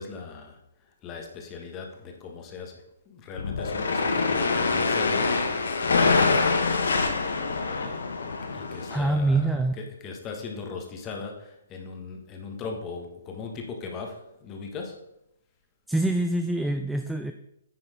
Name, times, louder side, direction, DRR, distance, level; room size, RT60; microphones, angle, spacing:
voice 1, 0.0-6.6 7.5-15.1, left 4 dB, 20° left, 2 dB, 1.4 m, -39 dB
sound 1, 3.4-9.0, left 4 dB, 80° left, 1.5 m, -25 dB
voice 2, 8.9-9.8 15.9-17.3, right 2 dB, ahead, 6 dB, 0.3 m, -25 dB
9.7 x 4.4 x 5.1 m, 0.81 s
hypercardioid pair, 160°, 0 cm